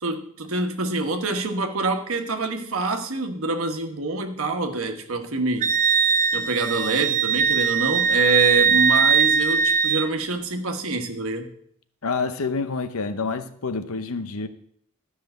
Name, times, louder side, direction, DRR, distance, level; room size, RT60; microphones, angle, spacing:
voice 1, 0.0-5.7 6.3-11.5, right 3 dB, 65° right, 1.3 m, -26 dB
Wind instrument woodwind instrument, 5.6-10.1, right 6 dB, 35° right, 0.4 m, -20 dB
voice 2, 12.0-14.5, left 4 dB, 70° left, 0.8 m, -27 dB
12.5 x 5.6 x 7.9 m
head